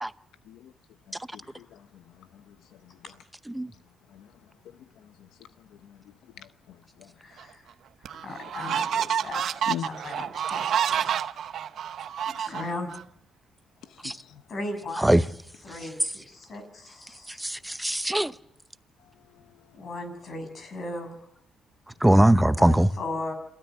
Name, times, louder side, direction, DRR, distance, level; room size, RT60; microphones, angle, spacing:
voice 1, 1.1-2.0 2.3-2.5 2.8-3.0 4.1-4.3 5.2-5.3 5.8-6.0 6.4-7.1 9.7-9.9 13.9-14.4 15.7-15.9 19.4-19.5 22.6-22.7, left 11 dB, 85° left, 0.8 m, -42 dB
voice 2, 7.2-7.6 8.0-9.4 9.7-11.1 11.4-11.5 12.4-12.9 14.5-15.2 15.6-17.4 19.8-21.2 22.5-23.3, left 2 dB, 50° left, 6.8 m, -37 dB
sound 1, 7.4-7.5 8.1-13.0, right 9 dB, 70° right, 0.9 m, -29 dB
voice 3, 17.4-18.3 22.0-22.9, right 1 dB, 5° right, 0.8 m, -20 dB
28.0 x 13.0 x 8.1 m
cardioid pair, 90°, 0 cm